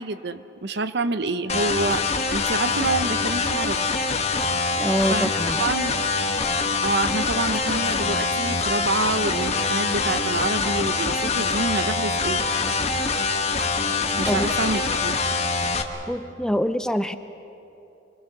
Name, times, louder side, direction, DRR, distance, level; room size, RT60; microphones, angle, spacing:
voice 1, 0.0-2.0 2.3-3.9 5.1-5.3 5.6-6.0 6.8-12.4 14.1-15.2, right 3 dB, 60° right, 12 dB, 0.8 m, -27 dB
sound 1, 1.5-15.8, left 4 dB, 35° left, 1.2 m, -24 dB
voice 2, 4.8-5.6 14.3-14.5 16.1-17.2, equal, 5° left, 10 dB, 0.5 m, -25 dB
27.5 x 21.5 x 6.7 m, 2.9 s
head